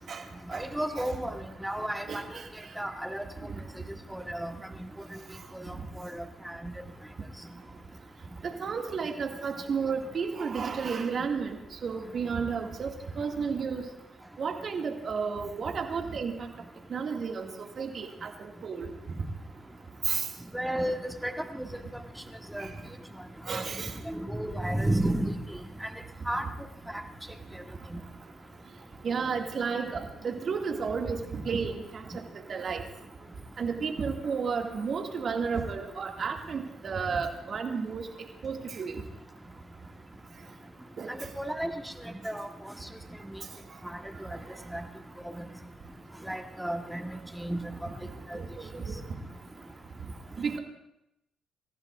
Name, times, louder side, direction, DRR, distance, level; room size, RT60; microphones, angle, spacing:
voice 1, 0.5-1.3 1.6-2.2 2.8-3.2 4.1-4.5 5.5-5.6 6.0-6.6 20.5-21.8 22.5-22.7 23.5-23.6 24.1-25.4 25.8-25.9 26.3-26.5 26.9-27.0 41.1-42.7 43.8-44.3 44.7-44.8 45.4-45.5 46.3-47.0 47.4-47.6 48.3-48.4 48.7-48.8, right 1 dB, 5° right, 5 dB, 1.5 m, -32 dB
voice 2, 2.1-2.5 8.4-11.6 11.8-13.9 14.4-16.3 16.9-17.5 17.8-18.9 20.0-20.2 22.6-22.7 23.5-23.9 29.0-32.2 32.5-32.8 33.6-38.1 38.4-39.0 41.0-41.3 48.3-49.0 50.4-50.6, right 5 dB, 50° right, 3 dB, 2.2 m, -32 dB
27.5 x 15.0 x 2.6 m, 0.87 s
hypercardioid pair, 45°, 0 cm